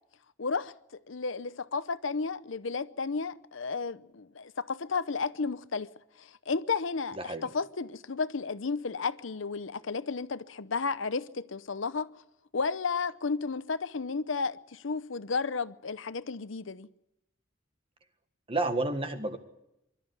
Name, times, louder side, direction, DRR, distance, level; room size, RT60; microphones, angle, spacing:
voice 1, 0.4-5.9 6.2-12.1 12.5-16.9, left 4 dB, 80° left, 0.8 m, -33 dB
voice 2, 7.2-7.5 18.5-19.4, right 2 dB, 30° right, 1.7 m, -30 dB
23.0 x 13.0 x 9.7 m
head